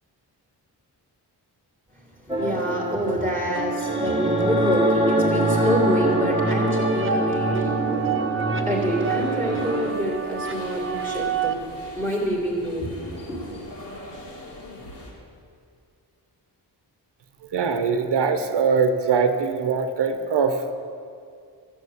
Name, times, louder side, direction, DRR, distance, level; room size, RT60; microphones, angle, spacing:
voice 1, 1.9-8.1 8.6-11.6 11.9-13.6, equal, 5° left, -3 dB, 2.2 m, -27 dB
sound 1, 2.3-9.9, right 1 dB, 10° right, 1.4 m, -24 dB
sound 2, 3.5-11.5, right 6 dB, 30° right, 0.7 m, -29 dB
sound 3, 8.6-15.1, left 1 dB, 75° left, 3.0 m, -42 dB
voice 2, 17.5-20.7, right 5 dB, 70° right, 7 dB, 0.9 m, -22 dB
13.5 x 6.5 x 8.0 m, 2.3 s
wide cardioid pair, 155°, 43 cm